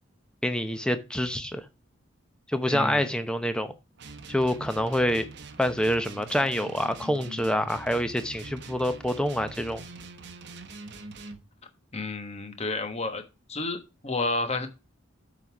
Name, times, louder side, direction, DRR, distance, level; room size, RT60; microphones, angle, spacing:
voice 1, 0.4-1.6 2.5-3.7 4.3-5.3 5.6-9.9, equal, 5° left, 0.7 m, -26 dB
voice 2, 2.7-3.0 11.9-13.2 13.5-14.7, left 2 dB, 30° left, 1.2 m, -31 dB
sound 1, 4.0-11.4, right 3 dB, 60° right, 0.9 m, -43 dB
7.9 x 4.0 x 5.9 m
head